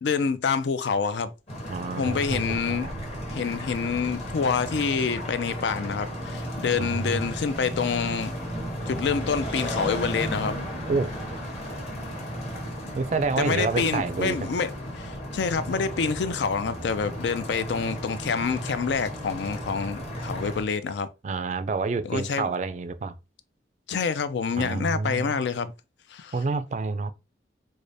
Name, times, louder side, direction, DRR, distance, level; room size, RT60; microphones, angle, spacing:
voice 1, 0.0-1.3 2.0-2.9 3.3-8.3 8.9-10.6 13.4-14.7 15.0-21.1 22.0-22.5 23.9-25.7 26.1-26.3, left 5 dB, 80° left, 0.4 m, -27 dB
sound 1, 1.5-20.6, equal, 35° left, 1.0 m, -34 dB
voice 2, 1.7-2.9 6.8-7.3 7.7-7.8 10.9-11.1 12.9-14.5 21.2-23.1 24.6-25.5 26.3-27.1, right 4 dB, 40° right, 0.3 m, -28 dB
4.8 x 2.1 x 2.6 m
head